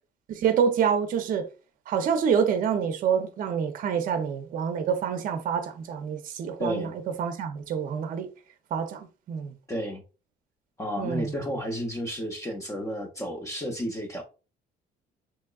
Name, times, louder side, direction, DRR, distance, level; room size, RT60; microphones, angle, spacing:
voice 1, 0.3-1.5 1.9-6.9 7.2-8.3 8.7-9.5 11.0-11.3, right 7 dB, 55° right, 0.6 m, -27 dB
voice 2, 6.6-7.0 9.7-10.0 10.8-14.2, equal, 20° left, 0.6 m, -32 dB
3.5 x 3.0 x 2.3 m
cardioid pair, 110°, 17 cm